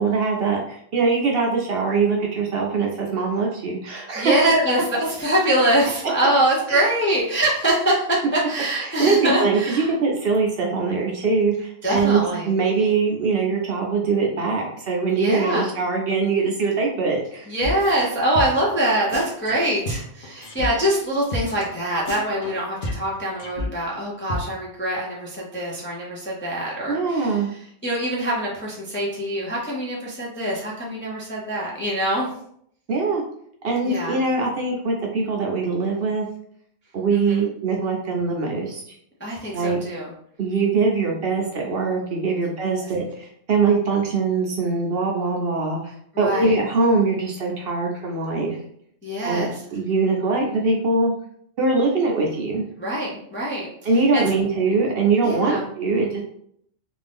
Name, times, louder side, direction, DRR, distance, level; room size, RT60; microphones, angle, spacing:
voice 1, 0.0-4.6 6.7-6.8 8.8-17.5 26.9-27.5 32.9-33.2 33.6-36.3 36.9-39.0 39.5-39.8 40.4-48.6 49.2-51.1 51.6-52.6 53.8-56.2, right 4 dB, 60° right, 0 dB, 0.7 m, -22 dB
voice 2, 4.2-9.9 11.8-12.5 15.1-15.7 17.5-32.3 33.8-34.2 37.1-37.4 39.2-40.1 46.1-46.5 49.0-49.6 52.8-53.7 53.9-54.2 55.2-55.6, right 1 dB, 15° left, -4 dB, 0.4 m, -24 dB
sound 1, 17.6-18.1 18.3-18.7 19.1-20.7 20.9-21.0 21.3-21.4 21.7-21.8 22.0-24.0 24.3-24.4, left 1 dB, 50° left, 0.7 m, -31 dB
2.6 x 2.5 x 3.4 m, 0.67 s
omnidirectional pair, 1.3 m